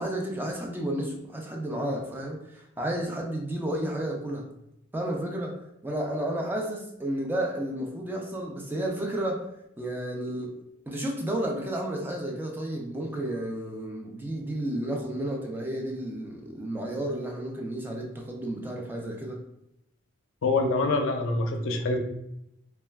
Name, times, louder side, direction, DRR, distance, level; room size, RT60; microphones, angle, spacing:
voice 1, 0.0-4.5 4.9-5.6 5.8-9.5 9.8-10.6 10.9-19.4, right 1 dB, 10° right, 0 dB, 0.3 m, -32 dB
voice 2, 20.4-22.0, left 3 dB, 65° left, 4 dB, 0.4 m, -25 dB
2.2 x 2.2 x 3.3 m, 0.81 s
head